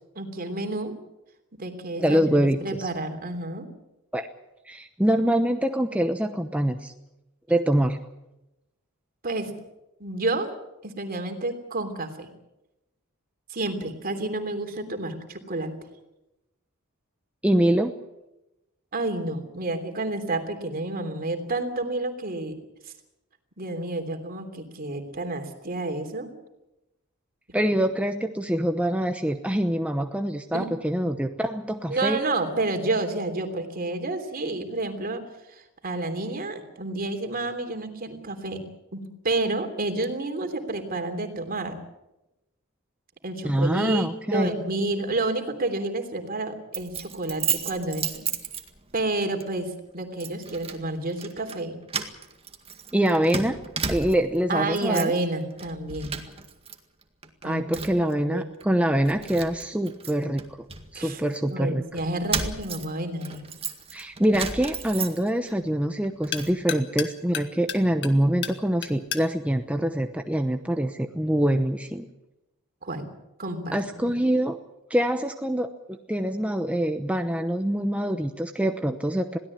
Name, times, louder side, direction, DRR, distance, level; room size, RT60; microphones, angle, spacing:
voice 1, 0.1-0.9 1.6-3.7 9.2-9.5 10.0-10.5 10.8-12.3 13.5-15.7 18.9-22.6 23.6-26.3 30.5-30.7 31.9-35.2 35.5-38.6 38.9-41.8 43.2-48.3 48.9-51.8 54.5-56.2 57.4-57.6 58.0-58.5 60.9-61.2 61.5-63.5 72.8-73.1 73.4-74.1, right 2 dB, 45° right, 7 dB, 3.2 m, -30 dB
voice 2, 2.0-2.9 4.1-4.3 4.7-6.9 7.5-8.0 17.4-17.9 27.5-32.2 43.4-44.5 52.9-53.6 53.9-55.1 57.4-60.4 60.9-61.8 63.9-72.1 73.7-74.6 74.9-79.4, right 1 dB, 5° right, 6 dB, 0.9 m, -25 dB
Keys jangling, 46.7-49.0 49.4-49.6 50.2-50.8 51.1-51.6 51.9-54.4 54.7-55.2 55.6-56.8 57.0-58.1 58.6-58.7 59.1-61.4 62.0-65.5 65.9-66.6, right 6 dB, 30° right, 2.0 m, -33 dB
sound 1, 63.6-70.9, left 9 dB, 55° left, 1.8 m, -38 dB
22.0 x 16.5 x 8.6 m, 0.93 s
head